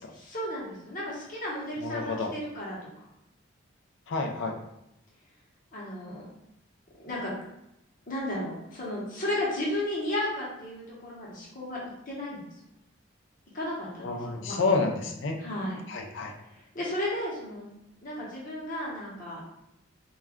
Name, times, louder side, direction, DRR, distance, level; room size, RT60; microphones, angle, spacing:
voice 1, 0.1-3.1 5.7-6.3 7.0-7.3 8.1-11.8 12.1-12.4 13.5-14.6 15.4-15.8 16.5-17.7 18.0-19.4, left 1 dB, 40° left, -5 dB, 0.8 m, -34 dB
voice 2, 1.8-2.3 4.1-4.5 14.0-15.4 15.9-16.3, left 3 dB, 65° left, 2 dB, 0.4 m, -29 dB
2.3 x 2.1 x 3.5 m, 0.83 s
head